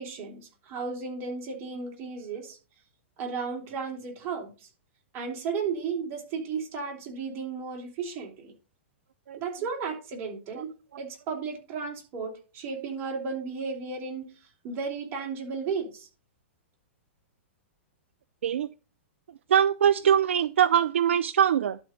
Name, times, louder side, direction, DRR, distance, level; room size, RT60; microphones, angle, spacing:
voice 1, 0.0-2.6 3.2-4.7 5.1-8.5 9.4-10.7 11.0-14.3 14.6-16.1, right 5 dB, 35° right, 2 dB, 3.2 m, -34 dB
voice 2, 19.5-21.8, right 9 dB, 75° right, 17 dB, 0.4 m, -22 dB
11.5 x 4.4 x 5.2 m, 0.34 s
hypercardioid pair, 115°, 7 cm